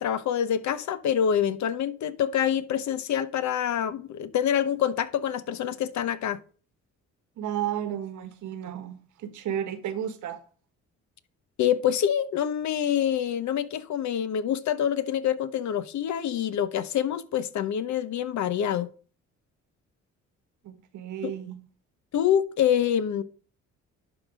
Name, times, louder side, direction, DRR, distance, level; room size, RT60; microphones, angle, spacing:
voice 1, 0.0-6.4 11.6-18.9 21.2-21.3 22.1-23.2, left 9 dB, 70° left, 0.9 m, -26 dB
voice 2, 7.4-10.4 20.6-21.6, right 10 dB, 80° right, 1.4 m, -33 dB
11.5 x 4.0 x 4.9 m
cardioid pair, 90°, 30 cm